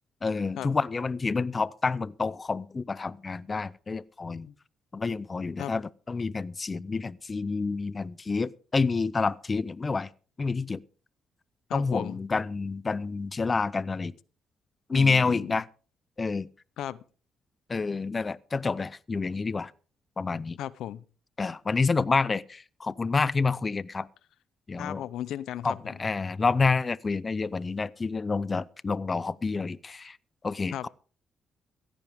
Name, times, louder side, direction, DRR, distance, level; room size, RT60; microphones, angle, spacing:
voice 1, 0.2-4.5 4.9-10.1 10.4-10.8 11.7-14.1 14.9-15.7 16.2-16.5 17.7-19.7 20.2-20.6 21.4-24.1 24.7-25.0 25.6-30.2 30.4-30.9, left 4 dB, 30° left, 0.5 m, -28 dB
voice 2, 11.7-12.2 14.9-15.6 16.8-17.0 20.6-21.0 24.8-26.0 30.7-30.9, left 11 dB, 80° left, 0.6 m, -36 dB
16.0 x 14.0 x 3.5 m
cardioid pair, 90°, 0 cm